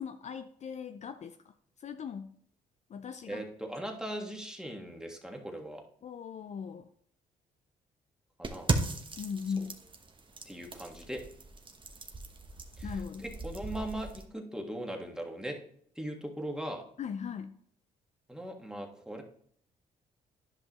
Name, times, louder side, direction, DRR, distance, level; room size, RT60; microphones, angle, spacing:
voice 1, 0.0-1.5 1.8-2.3 2.9-3.4 6.0-6.9 9.2-9.7 12.8-13.3 17.0-17.6, left 6 dB, 45° left, 9 dB, 0.5 m, -39 dB
voice 2, 3.3-5.8 8.4-8.7 9.6-9.7 10.4-11.2 12.8-15.6 15.9-16.8 18.3-19.2, right 1 dB, 5° right, 2 dB, 1.6 m, -39 dB
sound 1, 8.4-14.2, right 3 dB, 30° right, 1.1 m, -37 dB
10.5 x 5.5 x 3.0 m, 0.64 s
supercardioid pair, 65°, 16 cm